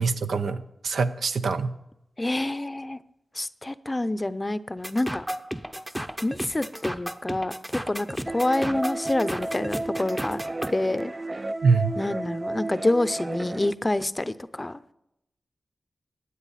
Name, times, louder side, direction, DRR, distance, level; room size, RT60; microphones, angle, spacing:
voice 1, 0.0-1.7 11.6-11.9, right 4 dB, 80° right, 9 dB, 0.7 m, -24 dB
voice 2, 2.2-3.0 3.3-5.3 6.2-10.4 10.7-11.1 12.0-14.9, left 2 dB, 25° left, 14 dB, 0.6 m, -27 dB
sound 1, 4.8-10.7, equal, 10° right, 0.8 m, -33 dB
sound 2, 8.3-13.7, right 2 dB, 35° right, 0.4 m, -33 dB
16.0 x 9.5 x 4.1 m, 0.84 s
cardioid pair, 45°, 0 cm